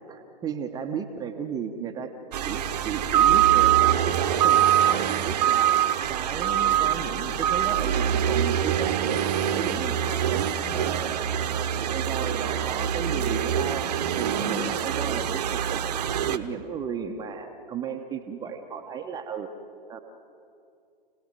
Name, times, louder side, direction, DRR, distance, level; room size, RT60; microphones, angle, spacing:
voice 1, 0.1-2.1 2.4-4.6 4.9-9.2 9.5-11.1 11.5-15.9 16.3-19.5 19.9-20.0, right 6 dB, 10° right, 4 dB, 1.1 m, -34 dB
sound 1, 2.3-16.4, right 10 dB, 40° right, 1.2 m, -24 dB
29.0 x 18.0 x 7.7 m, 2.6 s
figure-of-eight pair, 125°, 30 cm